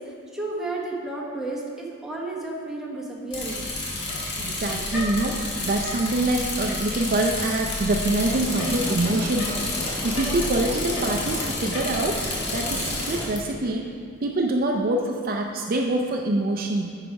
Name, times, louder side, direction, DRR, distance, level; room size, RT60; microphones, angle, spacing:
voice 1, 0.0-3.6, right 2 dB, ahead, -4 dB, 1.0 m, -32 dB
Bicycle, 3.3-13.4, left 2 dB, 55° left, 1.6 m, -30 dB
voice 2, 4.4-13.9 14.2-16.9, right 2 dB, 45° right, 2 dB, 0.5 m, -25 dB
sound 1, 8.3-13.3, left 1 dB, 20° left, 0.5 m, -36 dB
9.2 x 4.9 x 4.7 m, 2.1 s
head